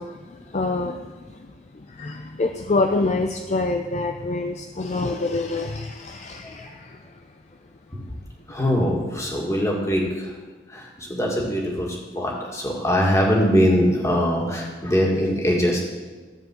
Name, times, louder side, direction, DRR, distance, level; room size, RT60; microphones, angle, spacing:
voice 1, 0.0-7.2, left 3 dB, 40° left, 5 dB, 0.5 m, -27 dB
voice 2, 8.5-10.3 10.7-15.8, equal, 15° left, -1 dB, 2.0 m, -22 dB
14.0 x 4.8 x 7.7 m, 1.3 s
head